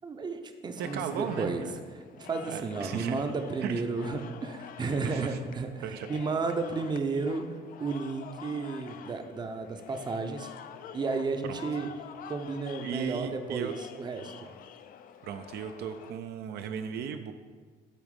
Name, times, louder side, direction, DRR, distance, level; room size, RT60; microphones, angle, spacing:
voice 1, 0.0-1.7 2.0-10.5 10.9-11.9 12.2-14.5, right 4 dB, 25° right, 6 dB, 0.6 m, -33 dB
sound 1, 0.8-16.1, left 9 dB, 55° left, 0.4 m, -48 dB
voice 2, 0.8-1.8 2.5-3.3 3.6-3.8 5.0-5.4 5.8-6.1 11.4-11.6 12.8-13.7 15.2-17.3, right 8 dB, 70° right, 7 dB, 0.5 m, -36 dB
8.2 x 3.1 x 5.2 m, 1.5 s
cardioid pair, 110°, 17 cm